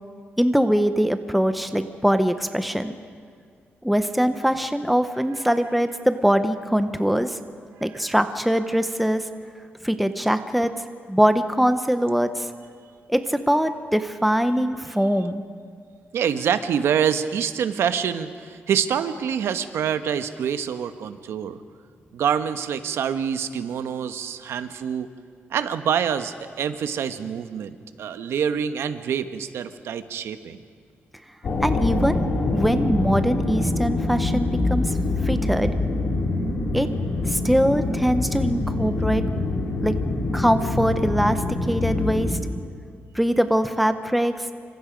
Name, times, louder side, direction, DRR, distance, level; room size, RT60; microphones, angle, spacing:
voice 1, 0.4-2.9 3.8-7.4 7.8-9.2 9.8-10.7 11.1-12.5 13.1-15.4 31.6-32.2 32.5-35.8 36.7-36.9 37.3-39.2 39.8-39.9 40.3-42.4 43.1-44.5, equal, ahead, 9 dB, 0.7 m, -22 dB
voice 2, 16.1-21.6 22.1-25.1 25.5-30.6, right 8 dB, 75° right, 10 dB, 1.1 m, -26 dB
sound 1, 31.4-42.3, left 2 dB, 45° left, 3.8 m, -25 dB
28.0 x 25.5 x 5.2 m, 2.1 s
wide cardioid pair, 165°, 4 cm